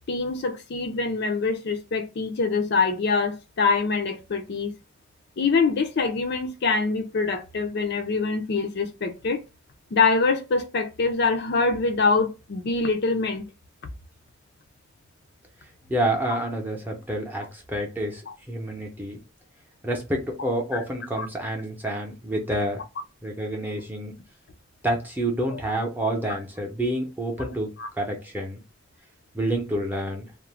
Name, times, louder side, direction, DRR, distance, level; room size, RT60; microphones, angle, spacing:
voice 1, 0.1-4.7 5.4-9.4 9.9-13.4 18.3-18.4 21.2-21.3 25.5-25.6 27.8-27.9, left 4 dB, 55° left, 0.4 m, -24 dB
voice 2, 15.9-18.2 18.5-19.2 19.8-22.8 23.2-24.1 24.8-27.7 28.0-28.6 29.3-30.3, right 1 dB, 10° right, 0.6 m, -28 dB
2.4 x 2.1 x 3.1 m
head